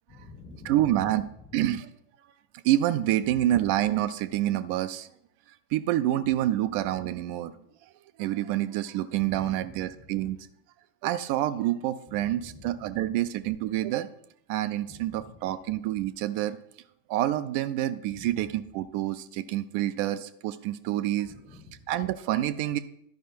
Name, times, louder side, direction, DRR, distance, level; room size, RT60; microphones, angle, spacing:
voice 1, 0.1-1.0 3.3-3.4 9.2-10.3 12.1-12.7 14.9-15.3 18.1-18.5 21.2-21.8, left 3 dB, 35° left, 6 dB, 1.6 m, -48 dB
voice 2, 0.6-1.2 1.5-1.9 2.6-5.1 5.7-7.5 8.2-10.4 11.0-14.1 14.5-16.6 17.1-21.3 21.9-22.8, right 13 dB, 45° right, 10 dB, 0.4 m, -27 dB
12.0 x 5.0 x 4.4 m, 0.71 s
figure-of-eight pair, 90°, 0 cm